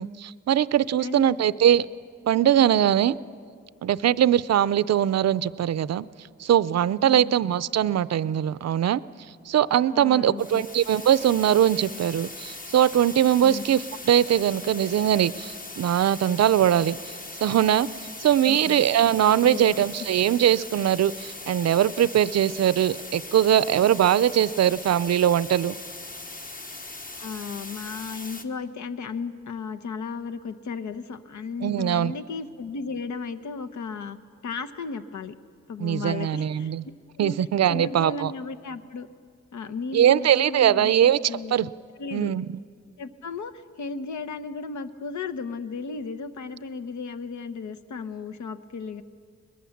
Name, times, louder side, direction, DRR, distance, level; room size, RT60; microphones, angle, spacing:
voice 1, 0.0-1.9 2.3-3.2 3.8-6.1 6.4-9.0 9.5-17.9 18.2-25.8 31.6-32.1 35.8-36.8 37.2-38.3 39.9-41.7 42.1-42.5, right 10 dB, 60° right, 18 dB, 0.5 m, -21 dB
voice 2, 1.0-1.3 7.0-7.3 9.9-10.6 13.4-13.6 18.5-18.8 19.4-19.8 27.2-34.2 34.4-35.4 35.7-36.7 37.2-37.3 37.7-39.1 39.5-40.9 41.3-41.7 42.0-42.3 43.0-49.0, left 4 dB, 80° left, 10 dB, 1.0 m, -35 dB
sound 1, 10.4-28.4, left 2 dB, 30° left, 1.1 m, -40 dB
23.0 x 21.0 x 7.2 m, 2.2 s
wide cardioid pair, 165°, 29 cm